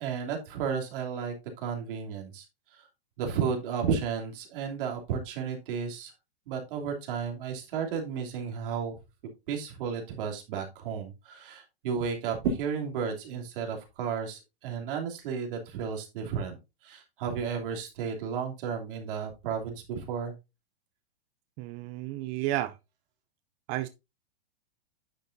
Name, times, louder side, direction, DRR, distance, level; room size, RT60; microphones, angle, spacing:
voice 1, 0.0-2.4 2.7-2.8 3.2-6.1 6.5-9.0 9.5-16.6 16.8-20.3, right 6 dB, 60° right, 2.9 m, -33 dB
voice 2, 21.6-22.8 23.7-23.9, right 15 dB, 30° right, 0.4 m, -32 dB
9.7 x 6.7 x 2.6 m
hypercardioid pair, 115°, 31 cm